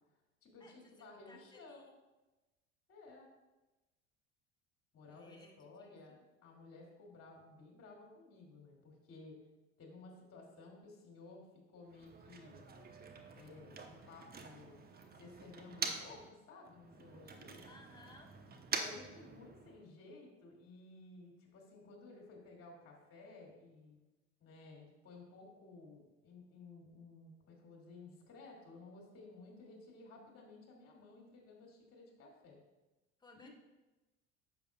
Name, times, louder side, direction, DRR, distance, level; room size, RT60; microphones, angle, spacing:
voice 1, 0.4-2.0 2.9-3.3 4.9-6.2 6.4-9.4 9.8-12.6 13.3-14.8 15.1-17.7 18.7-24.0 24.4-32.6 33.3-33.5, left 3 dB, 40° left, -1 dB, 2.7 m, -55 dB
voice 2, 1.3-1.9 5.1-6.2 17.6-18.3 33.2-33.5, left 2 dB, 10° left, 0 dB, 1.6 m, -60 dB
Motor vehicle (road), 11.8-16.3 16.6-19.9, right 5 dB, 25° right, 1.0 m, -46 dB
10.5 x 7.3 x 2.4 m, 1.1 s
hypercardioid pair, 70°, 35 cm